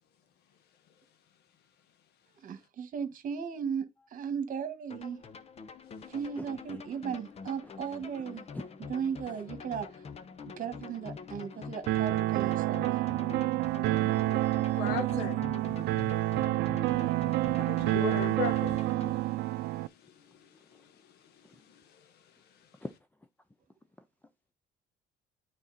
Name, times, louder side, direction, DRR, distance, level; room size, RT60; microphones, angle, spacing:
voice 1, 2.4-5.2 6.1-8.4 8.9-9.9 10.6-12.9 14.8-15.3, right 7 dB, 50° right, 1.5 m, -36 dB
sound 1, 4.9-19.1, left 5 dB, 40° left, 0.8 m, -45 dB
sound 2, 11.9-19.9, right 17 dB, 80° right, 0.4 m, -28 dB
voice 2, 14.1-14.8 17.9-18.2 21.4-21.6 22.8-22.9, left 2 dB, 10° left, 0.5 m, -44 dB
voice 3, 14.8-15.4 17.6-18.7 19.8-20.9, left 8 dB, 75° left, 1.2 m, -37 dB
9.0 x 4.1 x 4.1 m
cardioid pair, 110°, 17 cm